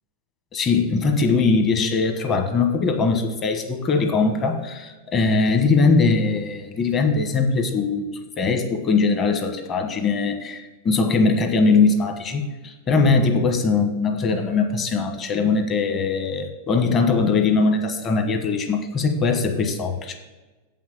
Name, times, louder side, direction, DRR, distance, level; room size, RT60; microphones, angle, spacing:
voice 1, 0.5-20.2, left 4 dB, 25° left, 5 dB, 1.2 m, -21 dB
8.2 x 5.8 x 7.3 m, 1.2 s
supercardioid pair, 155°, 0 cm